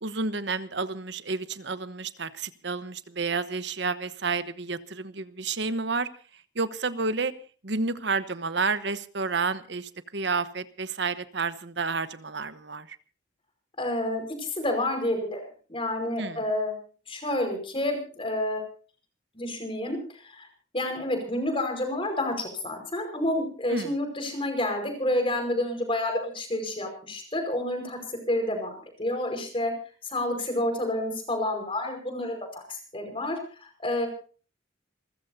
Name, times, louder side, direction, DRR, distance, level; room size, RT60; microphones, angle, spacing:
voice 1, 0.0-6.1 6.5-7.3 7.6-13.0 16.2-16.4 23.7-23.9, right 4 dB, 60° right, 13 dB, 1.1 m, -30 dB
voice 2, 13.8-15.4 15.7-16.7 17.1-18.7 19.3-20.5 20.7-28.0 28.3-28.7 29.0-29.7 30.0-32.4 32.7-34.1, left 1 dB, 25° left, 5 dB, 5.1 m, -29 dB
28.5 x 14.5 x 2.8 m, 0.39 s
head